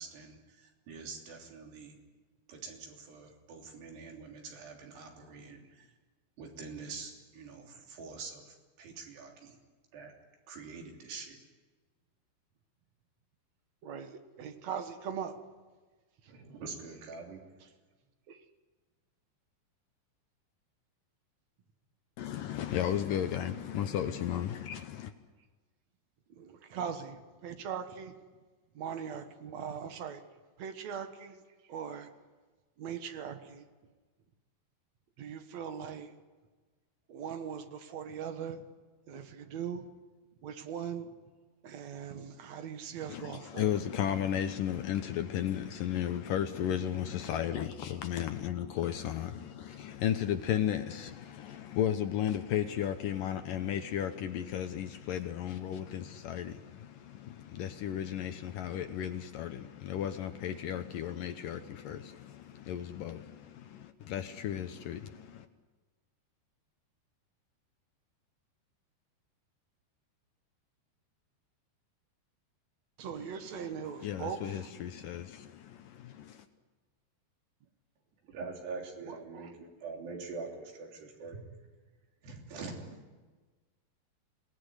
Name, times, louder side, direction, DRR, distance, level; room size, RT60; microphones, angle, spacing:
voice 1, 0.0-2.0 2.5-5.9 6.4-9.6 9.9-10.1 10.5-11.4 16.3-17.4 78.3-81.4 82.2-82.8, right 4 dB, 85° right, 5.4 m, -45 dB
voice 2, 13.8-15.4 18.3-18.4 26.3-28.1 28.7-30.2 30.6-31.4 31.7-32.1 32.8-33.7 35.2-36.1 37.1-38.7 39.1-39.9 40.4-41.1 41.6-43.8 73.0-74.7 79.1-79.5, right 7 dB, 55° right, 2.1 m, -40 dB
voice 3, 22.2-25.1 43.1-65.5 73.2-76.5, left 10 dB, 70° left, 2.2 m, -34 dB
27.0 x 19.0 x 9.8 m
omnidirectional pair, 4.7 m